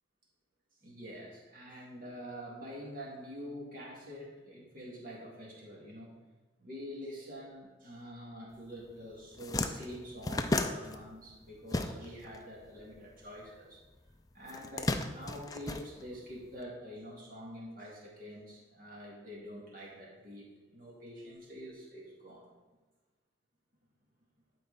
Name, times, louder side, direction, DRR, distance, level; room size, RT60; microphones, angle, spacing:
voice 1, 0.8-6.1 6.6-13.8 14.3-22.5, equal, 45° right, -4 dB, 2.3 m, -46 dB
sound 1, 8.8-8.9 9.2-12.4 12.6-13.8 14.4-16.5, left 2 dB, 20° left, 0.4 m, -34 dB
11.5 x 4.5 x 4.1 m, 1.2 s
head